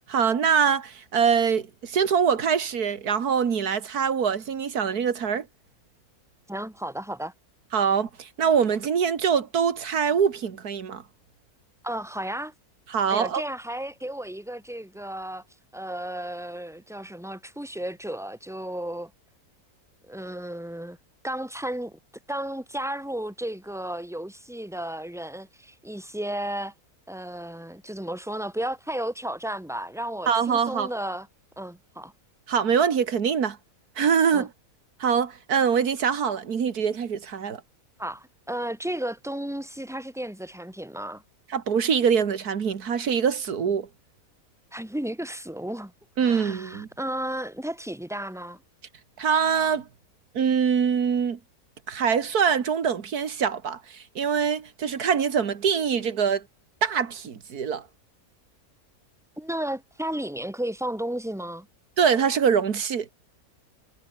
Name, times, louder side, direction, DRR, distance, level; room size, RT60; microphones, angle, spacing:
voice 1, 0.1-5.5 7.7-11.0 12.9-13.4 30.3-30.9 32.5-33.6 34.0-34.5 35.0-37.6 41.5-43.9 46.2-46.9 49.2-49.9 50.3-51.4 51.9-56.4 56.8-57.8 62.0-63.1, right 7 dB, 90° right, 2.1 m, -24 dB
voice 2, 6.5-7.3 11.8-12.5 13.1-15.4 15.7-19.1 20.1-21.0 21.2-22.0 22.3-26.7 27.1-31.3 31.6-32.1 34.3-34.5 38.0-41.2 44.7-45.9 46.2-48.6 59.4-61.7, right 1 dB, ahead, 3.4 m, -33 dB
omnidirectional pair, 1.6 m